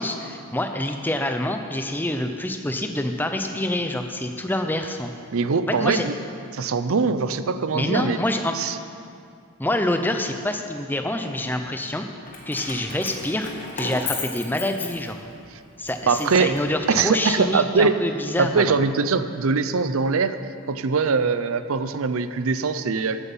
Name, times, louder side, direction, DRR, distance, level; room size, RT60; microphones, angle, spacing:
voice 1, 0.0-5.1 5.6-6.1 7.7-8.5 9.6-12.0 12.5-15.2 15.8-18.7, left 1 dB, 10° left, 6 dB, 0.6 m, -26 dB
voice 2, 5.3-6.1 6.5-8.2 8.5-8.8 16.1-16.5 16.9-18.0 18.4-20.4 20.7-23.2, right 4 dB, 70° right, 11 dB, 0.5 m, -22 dB
Keys jangling, 12.3-15.4 15.9-17.2, left 4 dB, 35° left, 1.6 m, -34 dB
14.5 x 8.3 x 5.5 m, 2.3 s
head